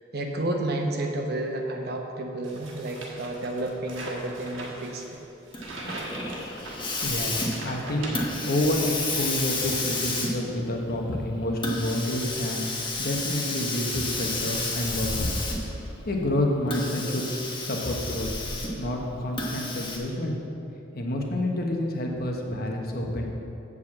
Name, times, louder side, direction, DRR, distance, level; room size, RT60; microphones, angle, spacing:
voice 1, 0.1-5.2, right 1 dB, 55° right, 2 dB, 1.0 m, -31 dB
sound 1, 2.4-8.8 9.2-10.1, right 2 dB, 85° right, 1.5 m, -41 dB
Hiss, 5.5-15.9 16.6-18.9 19.4-20.0, left 2 dB, 25° left, 1.2 m, -31 dB
voice 2, 7.0-8.2 8.4-12.6 13.0-15.3 16.1-17.3 17.6-18.3 18.8-20.4 20.9-23.2, left 1 dB, 55° left, 1 dB, 1.1 m, -28 dB
8.0 x 4.9 x 7.2 m, 2.9 s
head